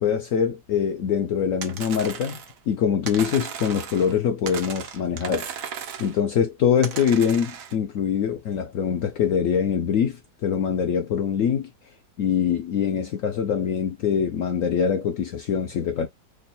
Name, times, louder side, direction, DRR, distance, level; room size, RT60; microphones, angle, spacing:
voice 1, 0.0-2.4 2.7-5.5 6.0-11.7 12.2-16.1, left 7 dB, 80° left, 0.7 m, -23 dB
sound 1, 1.6-2.6 3.1-4.2 4.5-6.2 6.8-7.8, right 7 dB, 60° right, 0.9 m, -36 dB
3.5 x 2.2 x 4.1 m
omnidirectional pair, 2.0 m